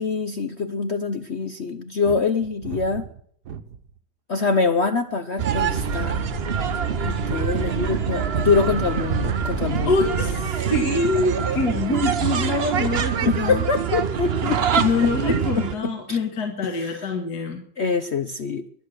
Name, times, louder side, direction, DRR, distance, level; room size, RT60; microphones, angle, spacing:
voice 1, 0.0-3.1 4.3-6.2 7.0-10.0 13.3-15.1 15.6-16.2 16.6-17.1 17.8-18.7, left 4 dB, 80° left, 10 dB, 0.6 m, -25 dB
sound 1, 2.0-4.0 4.7-5.1, right 8 dB, 60° right, 1.4 m, -37 dB
sound 2, 5.4-15.8, right 8 dB, 80° right, 0.5 m, -25 dB
sound 3, 5.5-10.5, left 1 dB, 30° left, 0.8 m, -33 dB
voice 2, 9.9-13.6 14.8-17.6, left 3 dB, 50° left, 4 dB, 2.2 m, -25 dB
22.0 x 8.3 x 6.5 m, 0.63 s
omnidirectional pair, 2.3 m